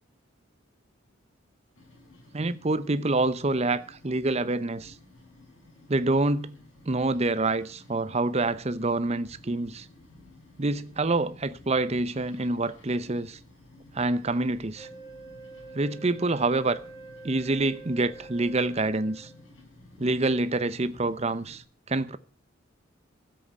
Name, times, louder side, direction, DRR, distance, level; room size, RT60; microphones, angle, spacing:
sound 1, 1.8-21.6, left 2 dB, 75° left, 6.1 m, -54 dB
voice 1, 2.3-4.9 5.9-6.6 6.9-9.9 10.6-13.4 13.9-14.9 15.7-16.8 17.2-19.3 20.0-22.2, right 2 dB, 30° right, 0.7 m, -27 dB
Wind instrument woodwind instrument, 14.7-19.5, right 3 dB, 20° left, 2.9 m, -46 dB
13.5 x 7.8 x 8.3 m
head